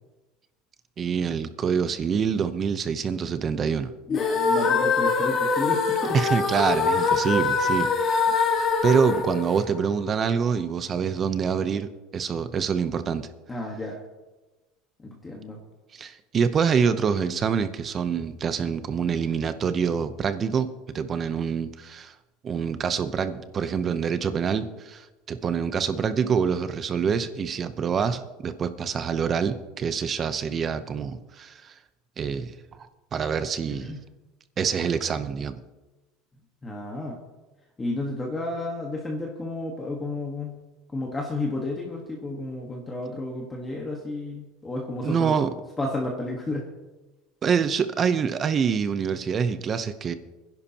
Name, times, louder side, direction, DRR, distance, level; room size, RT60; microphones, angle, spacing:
voice 1, 1.0-3.9 6.1-8.2 8.5-13.3 15.9-22.1 22.4-31.7 32.2-32.5 33.1-33.9 34.6-35.6 45.0-45.5 47.4-50.1, right 6 dB, 25° right, 11 dB, 0.7 m, -26 dB
sound 1, 4.1-10.2, left 4 dB, 30° left, 1.7 m, -24 dB
voice 2, 4.1-6.2 13.5-14.0 15.0-15.6 33.7-34.0 36.6-37.2 37.8-40.5 40.9-45.4 45.8-46.7, left 2 dB, 15° left, -1 dB, 1.4 m, -32 dB
24.0 x 10.5 x 2.9 m, 1.1 s
cardioid pair, 165°, 0 cm